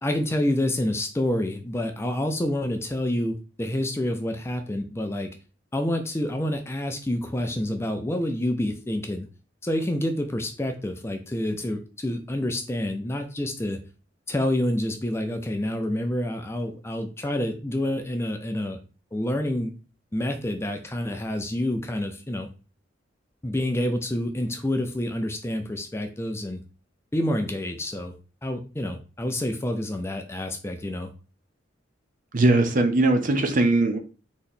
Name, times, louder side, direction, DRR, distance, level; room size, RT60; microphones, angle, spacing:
voice 1, 0.0-5.3 5.7-9.3 9.6-13.8 14.3-18.8 19.1-19.7 20.1-22.5 23.4-26.6 27.1-28.1 28.4-31.1, left 1 dB, 15° left, 6 dB, 0.4 m, -28 dB
voice 2, 32.3-34.0, right 2 dB, 45° right, 7 dB, 0.7 m, -20 dB
3.9 x 3.0 x 4.2 m, 0.34 s
head